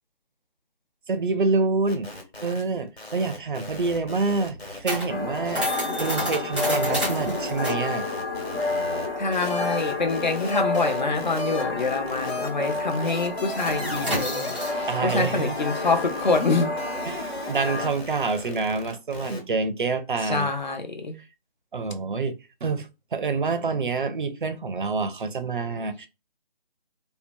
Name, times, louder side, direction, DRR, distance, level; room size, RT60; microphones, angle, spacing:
voice 1, 1.1-2.1 2.4-5.7 6.0-8.0 14.9-15.5 17.0-20.5 21.1-21.2 21.7-22.3 22.6-26.1, right 4 dB, 55° right, 0.5 m, -27 dB
sound 1, 1.9-2.6 2.9-5.0 5.4-9.1 9.3-19.4, left 2 dB, 80° left, 1.4 m, -37 dB
sound 2, 3.3-12.3 12.5-12.8 13.1-18.8, equal, 10° right, 0.6 m, -32 dB
old.town, 5.1-17.9, left 3 dB, 25° left, 0.9 m, -30 dB
voice 2, 9.2-16.7 20.3-21.2, left 3 dB, 50° left, 0.5 m, -26 dB
2.7 x 2.1 x 2.5 m
figure-of-eight pair, 160°, 31 cm